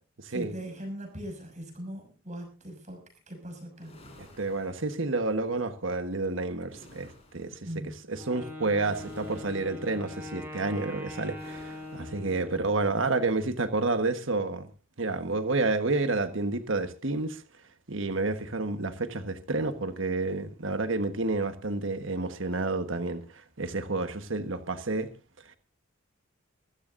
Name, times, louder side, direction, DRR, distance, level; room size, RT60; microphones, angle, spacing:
voice 1, 0.3-4.0 7.6-8.0, equal, 35° right, 6.3 m, -40 dB
sound 1, 3.7-5.4 6.7-7.6 8.8-9.9 11.3-12.3, left 1 dB, 30° left, 5.5 m, -54 dB
voice 2, 4.2-7.1 7.3-7.5 8.1-14.7 15.0-17.4 17.9-25.1, right 3 dB, 65° right, 1.4 m, -30 dB
Wind instrument woodwind instrument, 8.1-13.0, left 2 dB, 10° right, 5.3 m, -42 dB
23.5 x 15.0 x 2.6 m
head